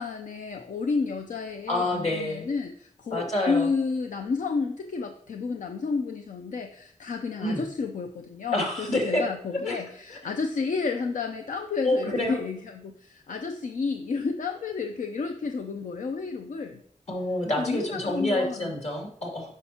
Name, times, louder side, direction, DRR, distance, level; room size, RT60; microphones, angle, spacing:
voice 1, 0.0-16.8 17.6-18.7, left 4 dB, 80° left, 5 dB, 0.6 m, -31 dB
voice 2, 1.7-2.5 3.1-3.7 7.4-7.6 8.5-9.2 9.7-9.8 11.8-12.4 13.3-13.4 17.1-19.5, left 1 dB, 60° left, 0 dB, 2.6 m, -27 dB
9.7 x 5.7 x 2.9 m, 0.69 s
wide cardioid pair, 90°, 13 cm